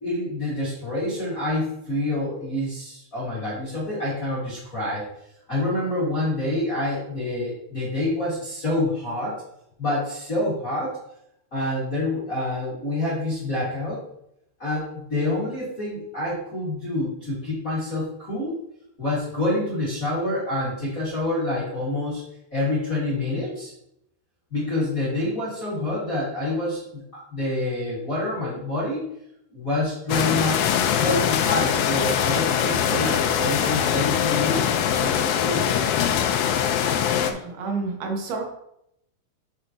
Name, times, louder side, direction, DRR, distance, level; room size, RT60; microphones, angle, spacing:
voice 1, 0.0-5.0 5.5-9.4 9.8-11.0 11.5-14.0 14.6-18.6 19.0-22.2 22.5-23.7 24.5-29.1 29.5-30.6 30.9-34.7 35.0-35.7, left 1 dB, 30° left, -9 dB, 1.8 m, -27 dB
sound 1, 30.1-37.3, left 9 dB, 80° left, 2.2 m, -22 dB
voice 2, 37.3-38.4, right 4 dB, 75° right, 1 dB, 3.1 m, -29 dB
8.7 x 5.6 x 3.0 m, 0.78 s
omnidirectional pair, 4.5 m